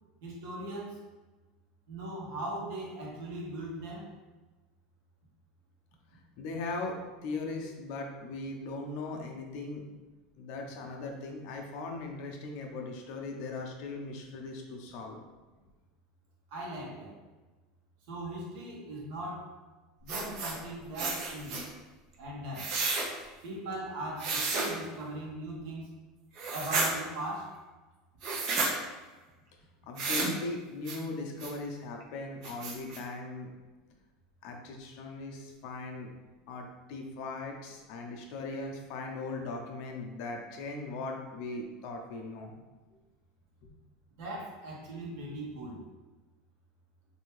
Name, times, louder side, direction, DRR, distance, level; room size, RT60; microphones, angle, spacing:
voice 1, 0.2-1.0 1.9-4.1 16.5-17.1 18.1-19.5 20.0-21.6 22.2-22.7 23.4-25.9 26.5-27.6 44.2-45.8, right 1 dB, 75° right, -3 dB, 1.1 m, -39 dB
voice 2, 6.4-9.8 10.4-15.2 29.9-33.5 34.4-36.1 36.5-42.5 43.6-43.7, left 3 dB, 65° left, 2 dB, 0.6 m, -39 dB
sound 1, 20.1-20.6 21.0-21.6 22.5-23.1 24.2-24.7 26.4-26.9 28.2-28.7 30.0-30.3 30.9-31.0 31.4-31.5 32.0-32.1 32.4-33.0, right 3 dB, 60° right, 0.7 m, -31 dB
3.3 x 2.7 x 3.1 m, 1.2 s
supercardioid pair, 110°, 0 cm